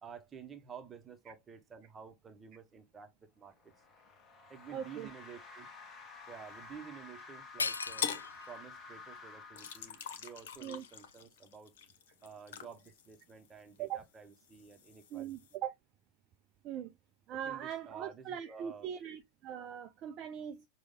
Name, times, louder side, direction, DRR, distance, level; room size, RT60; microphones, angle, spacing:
voice 1, 0.0-3.7 4.5-5.7 6.3-8.1 8.5-11.7 12.2-15.3 17.4-18.9, right 6 dB, 20° right, 1.0 m, -51 dB
sound 1, 3.5-10.6, left 4 dB, 25° left, 1.3 m, -52 dB
voice 2, 4.7-5.1 10.6-10.8 13.8-14.0 15.1-15.7 16.6-16.9 17.3-20.7, right 9 dB, 35° right, 0.5 m, -41 dB
sound 2, 7.2-7.3 7.6-8.6 9.1-9.2 9.8-11.2, left 4 dB, 75° left, 0.3 m, -39 dB
sound 3, 8.0-8.3 9.6-13.8 14.2-15.6, left 8 dB, 55° left, 0.8 m, -43 dB
6.3 x 2.3 x 3.6 m
figure-of-eight pair, 90°, 0 cm